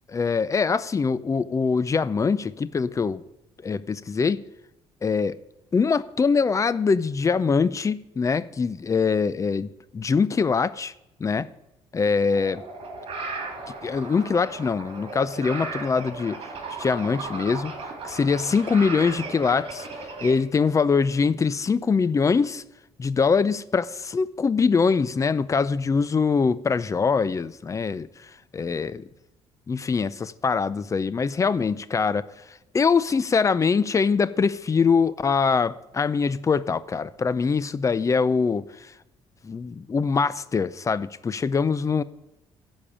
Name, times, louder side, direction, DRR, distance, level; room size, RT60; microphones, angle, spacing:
voice 1, 0.1-3.2 3.6-4.4 5.0-5.4 5.7-10.9 11.2-11.5 11.9-12.6 13.8-16.4 16.8-17.7 18.0-19.9 20.2-22.6 23.0-28.1 28.5-29.0 29.7-32.2 32.7-38.6 39.4-42.0, left 5 dB, 30° left, 0.6 m, -23 dB
sound 1, 12.3-20.3, right 3 dB, 55° right, 3.5 m, -36 dB
15.0 x 5.3 x 8.6 m
cardioid pair, 95°, 11 cm